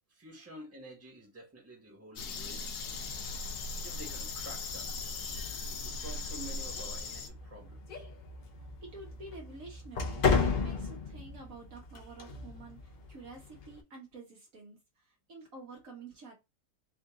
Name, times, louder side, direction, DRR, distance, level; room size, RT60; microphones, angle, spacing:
voice 1, 0.1-2.7 3.8-5.1 5.7-8.1, right 1 dB, 10° right, 1.2 m, -49 dB
sound 1, 2.2-7.3, left 4 dB, 80° left, 1.2 m, -39 dB
sound 2, 2.9-13.8, left 5 dB, 50° left, 0.7 m, -36 dB
voice 2, 8.5-16.3, right 3 dB, 60° right, 1.4 m, -50 dB
3.7 x 2.6 x 3.6 m
omnidirectional pair, 1.7 m